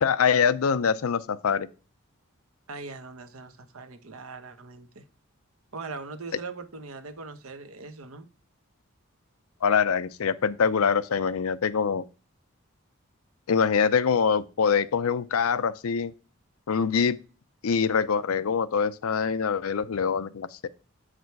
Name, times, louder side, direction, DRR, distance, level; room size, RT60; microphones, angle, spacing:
voice 1, 0.0-1.7 9.6-12.0 13.5-16.1 16.7-17.2 17.6-20.7, left 6 dB, 90° left, 0.5 m, -24 dB
voice 2, 2.7-5.0 5.7-8.3, right 4 dB, 85° right, 1.0 m, -40 dB
8.2 x 5.0 x 4.6 m
head